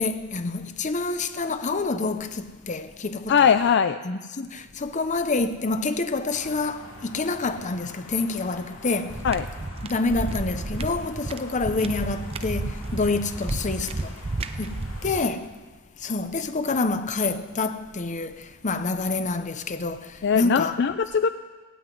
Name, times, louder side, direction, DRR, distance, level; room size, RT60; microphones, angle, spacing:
voice 1, 0.0-3.4 4.0-9.2 9.8-14.1 14.6-15.5 16.0-20.8, left 3 dB, 35° left, 0.7 m, -27 dB
voice 2, 3.3-4.0 9.2-9.4 20.2-21.3, left 7 dB, 55° left, 0.4 m, -20 dB
sound 1, 6.3-15.3, left 2 dB, 85° left, 2.7 m, -45 dB
sound 2, 9.1-15.2, right 2 dB, 30° right, 0.6 m, -32 dB
16.0 x 8.0 x 9.2 m
head